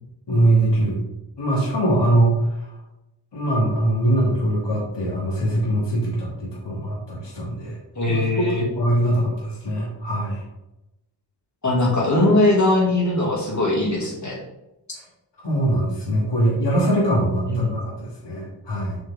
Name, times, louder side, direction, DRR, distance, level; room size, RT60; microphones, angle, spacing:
voice 1, 0.3-1.0 1.4-2.6 3.3-7.8 8.1-10.4 15.4-19.0, right 1 dB, 65° left, -4 dB, 2.6 m, -22 dB
voice 2, 8.0-8.6 11.6-14.4 17.5-17.8, left 2 dB, 40° left, -2 dB, 2.5 m, -20 dB
7.6 x 5.3 x 3.8 m, 0.91 s
wide cardioid pair, 110°, 46 cm